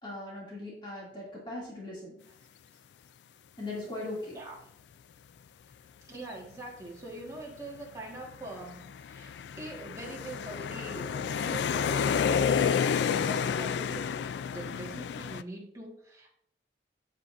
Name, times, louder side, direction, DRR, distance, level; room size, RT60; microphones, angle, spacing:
voice 1, 0.0-2.2 3.6-4.4, left 2 dB, 25° left, -5 dB, 2.5 m, -39 dB
voice 2, 6.1-9.3 9.6-14.2 14.5-16.3, right 2 dB, 20° right, -3 dB, 1.6 m, -43 dB
sound 1, 7.4-7.5 8.2-15.4, left 7 dB, 70° left, 0.3 m, -30 dB
8.2 x 7.9 x 2.6 m, 0.69 s
head